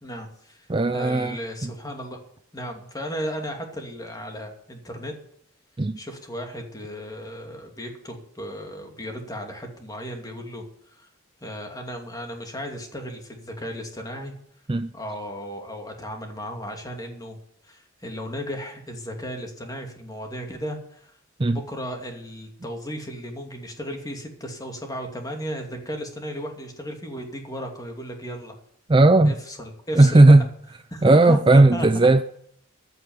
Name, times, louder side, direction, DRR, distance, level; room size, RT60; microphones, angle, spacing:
voice 1, 0.0-0.7 0.9-2.2 2.5-5.2 6.0-11.1 11.4-14.3 14.9-17.4 17.6-21.1 21.4-28.6 29.2-30.4 30.9-32.2, equal, 20° left, 2.6 m, -35 dB
voice 2, 0.7-1.4 1.6-1.7 5.8-6.0 14.7-14.9 21.4-21.6 28.9-29.3 30.0-30.4 31.0-32.2, right 2 dB, 25° right, 0.5 m, -15 dB
14.5 x 6.9 x 9.3 m
head